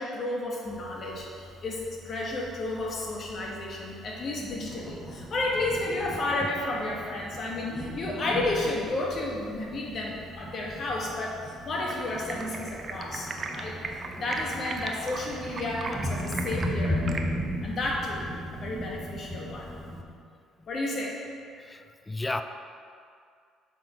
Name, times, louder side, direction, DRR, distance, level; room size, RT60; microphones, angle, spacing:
voice 1, 0.0-13.7 14.2-17.0 17.6-18.2 18.5-19.7 20.7-21.2, left 2 dB, 50° left, -2 dB, 1.3 m, -32 dB
Thunder, 0.7-20.0, equal, 10° right, 1.0 m, -37 dB
Stream, 11.7-17.2, right 3 dB, 40° right, 0.6 m, -38 dB
voice 2, 21.6-22.4, left 2 dB, 20° left, 9 dB, 0.4 m, -33 dB
7.2 x 3.9 x 4.2 m, 2.3 s
hypercardioid pair, 60°, 0 cm